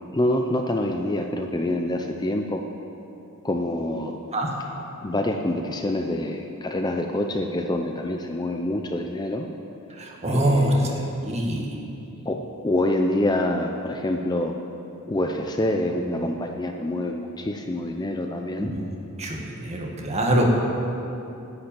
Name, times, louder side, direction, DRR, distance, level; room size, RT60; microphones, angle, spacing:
voice 1, 0.1-2.6 3.4-4.2 5.0-9.5 10.3-11.1 12.3-14.5 15.1-18.7, left 1 dB, 20° left, 3 dB, 0.5 m, -26 dB
voice 2, 10.0-10.7 11.2-11.8 18.6-18.8 19.2-20.4, right 1 dB, 30° right, -1 dB, 1.7 m, -24 dB
10.5 x 7.9 x 8.9 m, 2.9 s
head